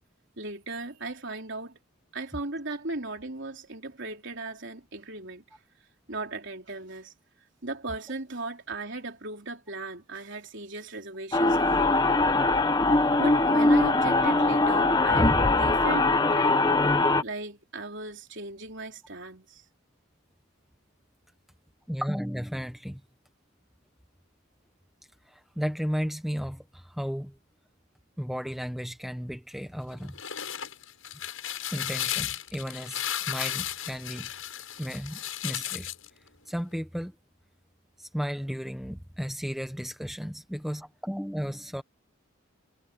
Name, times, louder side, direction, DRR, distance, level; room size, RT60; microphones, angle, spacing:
voice 1, 0.4-1.8 2.1-5.4 6.1-7.1 7.6-12.0 13.2-16.6 17.2-19.6, right 2 dB, 55° right, 3.9 m, -37 dB
sound 1, 11.3-17.2, left 2 dB, 20° left, 1.1 m, -22 dB
voice 2, 21.9-23.0 25.3-27.4 28.2-30.2 31.7-34.3 34.8-35.9 36.4-37.1 38.0-41.8, equal, ahead, 1.2 m, -34 dB
sound 2, 29.9-36.1, left 11 dB, 75° left, 8.0 m, -34 dB
head